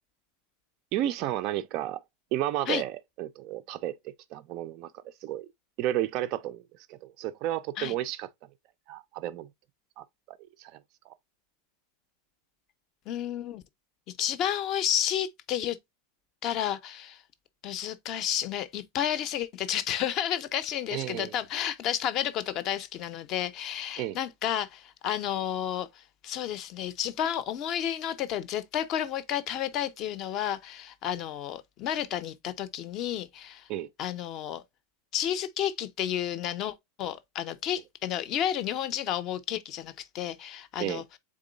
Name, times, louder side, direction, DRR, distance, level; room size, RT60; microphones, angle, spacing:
voice 1, 0.9-2.0 2.3-3.9 4.3-5.5 5.8-6.6 6.9-8.3 8.9-9.5 10.0-10.8 11.1-11.2 20.9-21.3 24.0-24.2 33.7-33.9 40.8-41.0, right 13 dB, 35° right, 0.3 m, -32 dB
voice 2, 13.1-13.6 14.2-15.8 16.4-17.2 17.6-33.7 34.0-34.6 35.1-41.0, left 10 dB, 30° left, 0.5 m, -31 dB
3.7 x 3.7 x 3.8 m
supercardioid pair, 175°, 0 cm